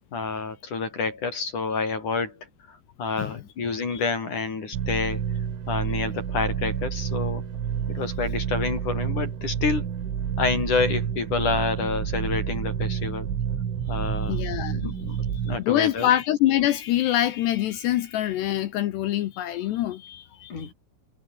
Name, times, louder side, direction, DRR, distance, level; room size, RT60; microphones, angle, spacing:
voice 1, 0.1-2.3 2.7-5.3 5.7-7.4 7.9-9.9 10.4-13.3 13.9-14.4 14.8-16.1 20.5-20.7, left 4 dB, 40° left, 5.2 m, -28 dB
sound 1, 4.7-15.6, right 8 dB, 70° right, 6.1 m, -29 dB
voice 2, 14.3-15.2 15.6-20.7, left 13 dB, 70° left, 2.7 m, -25 dB
omnidirectional pair, 5.9 m